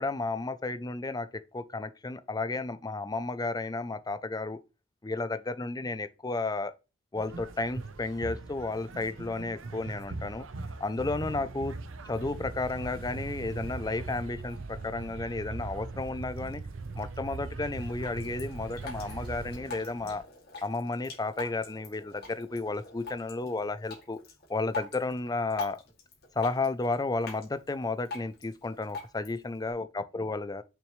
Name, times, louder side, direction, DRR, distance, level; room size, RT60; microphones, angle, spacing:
voice 1, 0.0-4.6 5.0-6.7 7.1-10.5 10.8-11.7 12.1-16.6 17.0-20.2 20.6-24.2 24.5-25.8 26.4-30.6, left 3 dB, 20° left, 0.5 m, -33 dB
sound 1, 7.1-20.2, right 2 dB, 80° right, 0.8 m, -43 dB
sound 2, 12.1-19.6, right 4 dB, 45° right, 0.4 m, -41 dB
Drip, 17.7-29.7, left 3 dB, 50° left, 2.4 m, -45 dB
6.9 x 6.1 x 3.2 m
head